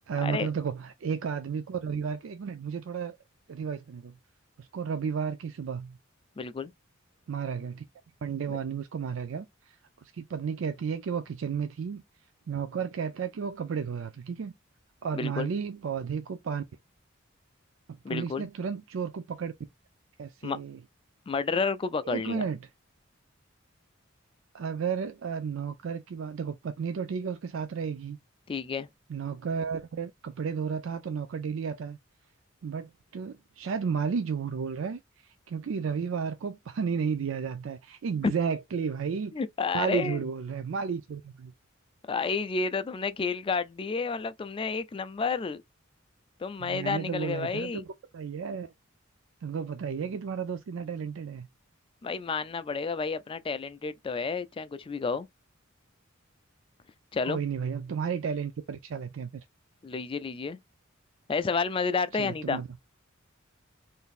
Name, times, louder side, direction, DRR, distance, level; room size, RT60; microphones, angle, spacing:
voice 1, 0.1-3.2 3.5-4.1 4.6-6.0 7.3-7.8 8.2-9.8 10.0-12.0 12.5-14.5 15.0-16.6 18.1-19.5 20.2-20.8 22.1-22.6 24.5-28.2 29.1-32.0 32.6-35.0 35.5-39.3 39.7-41.5 46.6-47.8 48.1-48.7 49.4-51.5 57.2-59.4 62.2-62.7, right 6 dB, 70° right, 0.4 m, -33 dB
voice 2, 6.4-6.7 8.5-8.6 15.1-15.5 18.0-18.5 20.4-20.6 21.3-22.4 28.5-28.9 38.2-38.3 39.3-40.2 42.1-45.6 46.4-47.8 52.0-55.3 57.1-57.4 59.8-60.6 61.3-62.6, left 4 dB, 25° left, 0.3 m, -30 dB
3.8 x 2.6 x 2.4 m
head